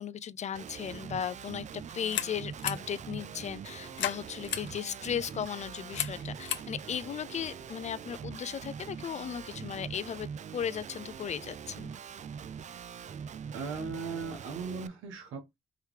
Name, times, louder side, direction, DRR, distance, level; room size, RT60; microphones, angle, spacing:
voice 1, 0.0-11.9, left 8 dB, 35° left, 0.4 m, -36 dB
Guitar, 0.5-14.9, right 7 dB, 40° right, 0.4 m, -43 dB
sound 1, 1.9-8.1, left 11 dB, 70° left, 0.7 m, -40 dB
voice 2, 13.5-15.6, right 5 dB, 85° right, 1.3 m, -38 dB
4.6 x 3.1 x 3.2 m
cardioid pair, 90°, 20 cm